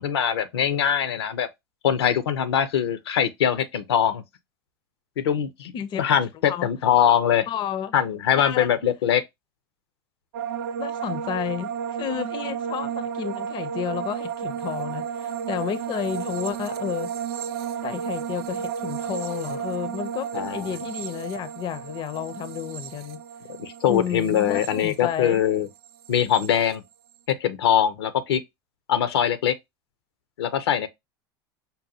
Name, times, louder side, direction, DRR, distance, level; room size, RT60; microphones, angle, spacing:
voice 1, 0.0-1.5 1.8-4.2 5.2-5.7 6.0-7.5 7.9-9.2 20.3-20.7 23.6-25.7 26.1-26.8 27.4-28.4 28.9-29.5 30.4-30.9, left 9 dB, 85° left, 0.6 m, -22 dB
voice 2, 7.5-7.9 8.4-8.7 10.8-17.1 17.8-23.2 23.9-25.4, left 9 dB, 35° left, 0.5 m, -31 dB
sound 1, 10.3-25.6 25.8-26.5, right 8 dB, 70° right, 0.5 m, -33 dB
5.3 x 2.2 x 2.7 m
hypercardioid pair, 100°, 13 cm